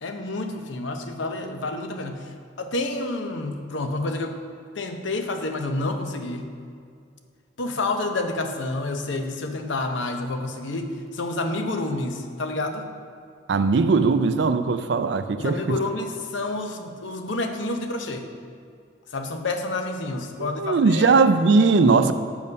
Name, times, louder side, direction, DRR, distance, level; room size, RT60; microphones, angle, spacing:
voice 1, 0.0-2.3 2.6-4.4 4.8-6.5 7.6-12.9 15.4-18.3 19.1-21.2, left 2 dB, 75° left, 6 dB, 0.7 m, -29 dB
voice 2, 13.5-15.8 20.4-22.1, right 4 dB, 65° right, 10 dB, 0.4 m, -19 dB
7.3 x 5.4 x 5.3 m, 2.3 s
head